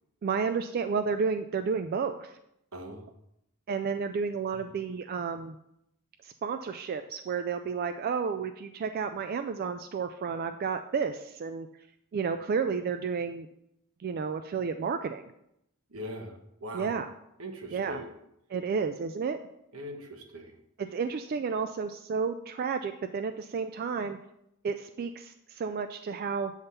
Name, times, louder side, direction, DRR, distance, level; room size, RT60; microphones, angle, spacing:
voice 1, 0.2-2.3 3.7-5.6 6.2-11.7 12.1-13.5 14.0-15.3 16.7-17.1 17.7-18.0 18.5-19.4 20.8-24.2 24.6-26.5, right 5 dB, 45° right, 9 dB, 0.3 m, -31 dB
voice 2, 2.7-3.1 4.5-4.7 15.9-16.9 17.4-18.1 19.7-20.5, equal, 85° right, 2 dB, 1.2 m, -41 dB
8.0 x 3.6 x 5.6 m, 0.79 s
head